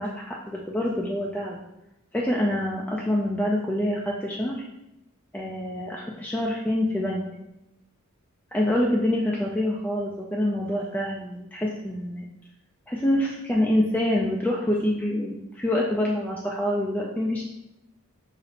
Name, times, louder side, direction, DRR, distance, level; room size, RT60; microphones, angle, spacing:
voice 1, 0.0-1.6 2.1-4.6 5.3-7.2 8.5-12.3 12.9-17.4, left 1 dB, 5° left, -3 dB, 0.3 m, -26 dB
5.4 x 2.0 x 4.0 m, 0.91 s
head